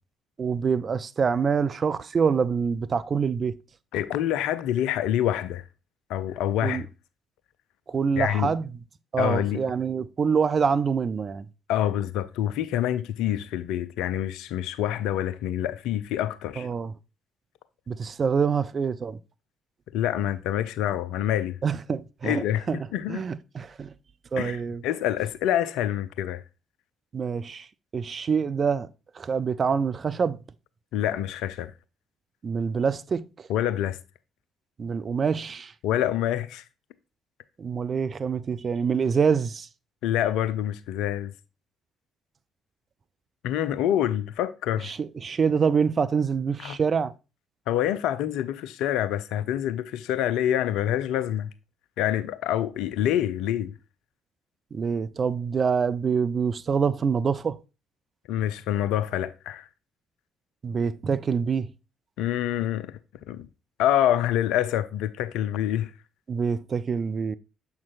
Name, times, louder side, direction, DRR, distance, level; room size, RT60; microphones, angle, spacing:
voice 1, 0.4-3.6 6.6-6.8 7.9-8.7 9.1-11.5 16.6-16.9 17.9-19.2 21.6-22.8 23.1-23.9 24.3-24.8 27.1-27.7 27.9-28.9 29.2-30.4 32.4-33.3 34.8-35.7 37.6-39.7 44.8-47.1 54.7-57.6 60.6-61.7 66.3-67.3, right 6 dB, 40° right, 0.4 m, -26 dB
voice 2, 3.9-5.6 6.1-6.8 8.2-8.5 9.2-9.6 11.7-16.7 19.9-21.6 22.2-23.2 24.4-26.4 30.9-31.7 33.5-34.0 35.8-36.6 40.0-41.3 43.4-44.9 46.6-46.8 47.7-51.5 52.0-53.7 58.3-59.7 62.2-62.9 63.3-63.5 63.8-65.9, left 11 dB, 65° left, 0.4 m, -26 dB
7.2 x 5.9 x 2.5 m
figure-of-eight pair, 45°, 0 cm